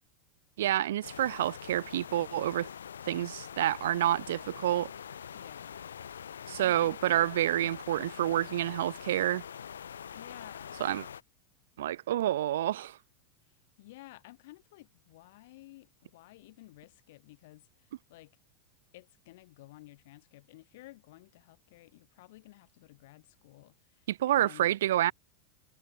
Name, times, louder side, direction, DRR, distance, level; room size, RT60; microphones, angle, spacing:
voice 1, 0.6-2.7 3.1-4.9 6.5-9.4 10.8-11.0 11.8-13.0 24.1-25.1, right 13 dB, 75° right, 0.7 m, -28 dB
sound 1, 1.0-11.2, left 8 dB, 90° left, 6.9 m, -44 dB
voice 2, 5.3-5.8 6.6-8.4 10.1-10.8 13.5-18.3 18.9-24.7, left 19 dB, 65° left, 6.2 m, -54 dB
hypercardioid pair, 100°, 0 cm